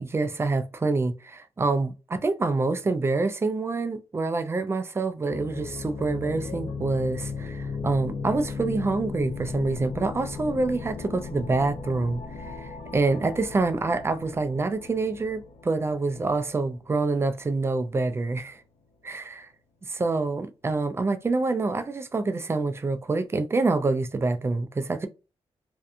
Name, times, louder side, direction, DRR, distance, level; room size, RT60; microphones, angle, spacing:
voice 1, 0.0-18.6 19.0-19.2 19.9-25.1, right 3 dB, 25° right, 0.3 m, -26 dB
sound 1, 5.3-18.0, left 4 dB, 75° left, 0.5 m, -37 dB
2.6 x 2.3 x 2.5 m
cardioid pair, 90°, 11 cm